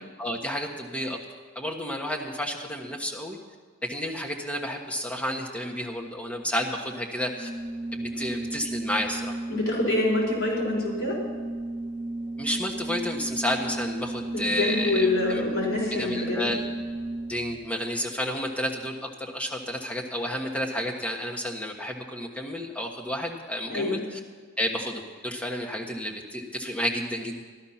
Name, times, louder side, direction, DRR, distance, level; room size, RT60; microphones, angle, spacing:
voice 1, 0.2-1.2 1.5-3.4 3.9-7.5 7.9-9.4 12.4-15.4 15.9-16.6 17.3-24.2 24.6-27.4, equal, 5° left, 0 dB, 1.3 m, -31 dB
Organ, 7.3-17.6, right 2 dB, 35° right, 1.5 m, -34 dB
voice 2, 9.5-11.2 14.3-16.5 23.7-24.0, left 2 dB, 65° left, -4 dB, 4.5 m, -26 dB
14.0 x 12.5 x 5.8 m, 1.5 s
head